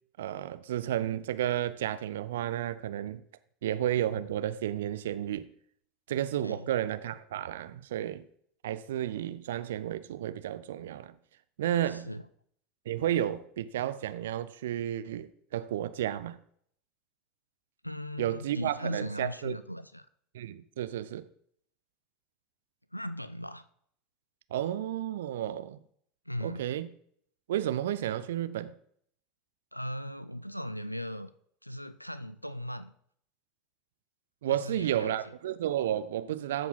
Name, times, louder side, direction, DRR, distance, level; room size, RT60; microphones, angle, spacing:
voice 1, 0.2-3.2 3.6-5.5 6.1-8.2 8.6-11.1 11.6-12.1 12.9-16.4 18.2-19.6 20.3-21.2 24.5-25.8 26.4-26.9 27.5-28.7 34.4-36.7, right 11 dB, 65° right, 0.4 m, -32 dB
voice 2, 11.8-12.3 17.8-20.1 22.9-23.7 26.3-26.8 29.7-31.3 31.6-32.9 34.4-35.1, equal, 90° left, 0.3 m, -38 dB
13.5 x 4.6 x 3.9 m
figure-of-eight pair, 75°, 0 cm